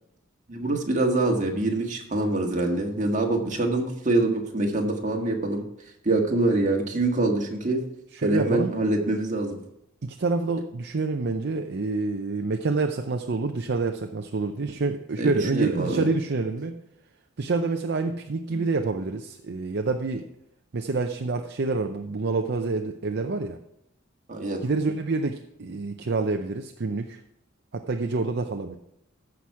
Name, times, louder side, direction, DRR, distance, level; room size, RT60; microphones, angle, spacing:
voice 1, 0.5-5.6 6.0-7.8 8.2-9.6 15.2-16.0 18.5-18.6 24.3-24.6, right 2 dB, 35° right, 1 dB, 1.7 m, -25 dB
voice 2, 8.1-8.7 10.0-16.8 17.4-20.2 20.7-23.6 24.6-27.2 27.7-28.8, right 3 dB, 55° right, 5 dB, 0.6 m, -27 dB
14.5 x 6.0 x 4.8 m, 0.79 s
head